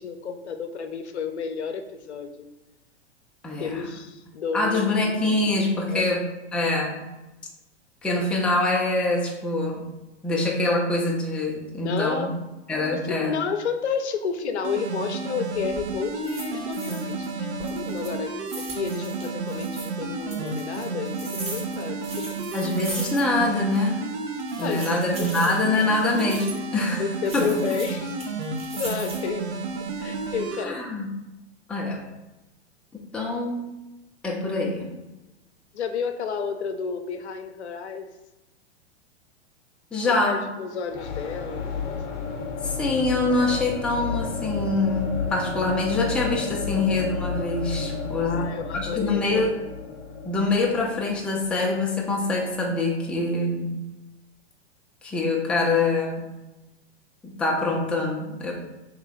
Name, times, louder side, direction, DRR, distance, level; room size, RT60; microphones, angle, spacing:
voice 1, 0.0-2.5 3.6-5.4 5.9-6.2 11.8-12.3 12.9-22.3 24.6-25.6 27.0-28.1 28.7-29.5 30.0-30.9 35.7-38.1 40.0-42.2 48.2-49.2, left 6 dB, 75° left, 7 dB, 0.5 m, -31 dB
voice 2, 3.4-3.8 4.5-6.3 6.5-7.0 8.0-9.8 10.2-12.3 12.7-13.3 22.5-24.0 24.6-27.0 27.3-27.5 30.6-31.1 31.7-32.0 33.1-33.7 34.2-35.0 39.9-40.4 42.6-48.4 48.7-49.5 50.2-53.7 55.0-56.2 57.2-58.5, left 2 dB, 5° left, -2 dB, 0.4 m, -24 dB
sound 1, 14.6-30.6, right 4 dB, 70° right, 0.7 m, -32 dB
sound 2, 15.5-15.9 16.2-17.3 17.6-19.9 20.3-23.5 23.7-23.8 24.4-26.6 27.2-29.4 29.9-30.4, right 2 dB, 20° right, 1.0 m, -39 dB
sound 3, 40.9-52.7, left 5 dB, 40° left, 0.8 m, -32 dB
3.1 x 3.0 x 3.7 m, 1.0 s
figure-of-eight pair, 100°, 34 cm